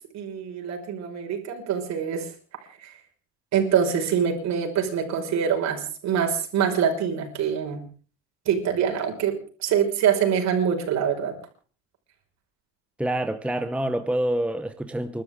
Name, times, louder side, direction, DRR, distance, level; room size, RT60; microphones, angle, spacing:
voice 1, 0.1-2.3 2.8-3.0 3.5-7.8 8.5-9.4 9.6-11.3, right 8 dB, 55° right, 5.4 m, -24 dB
voice 2, 13.0-15.2, right 1 dB, 5° right, 1.0 m, -27 dB
30.0 x 12.5 x 3.7 m
cardioid pair, 115°, 33 cm